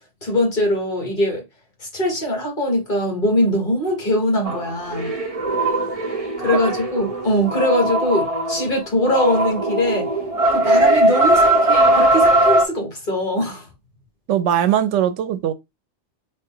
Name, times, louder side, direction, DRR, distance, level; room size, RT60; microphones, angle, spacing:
voice 1, 0.2-1.4 1.8-5.1 6.4-10.1 10.5-13.7, left 1 dB, 45° left, 1.5 m, -21 dB
sound 1, 4.5-8.7 9.0-12.7, right 1 dB, 35° right, 0.8 m, -19 dB
voice 2, 14.3-15.5, right 10 dB, 85° right, 0.9 m, -20 dB
3.9 x 2.1 x 3.6 m
omnidirectional pair, 1.2 m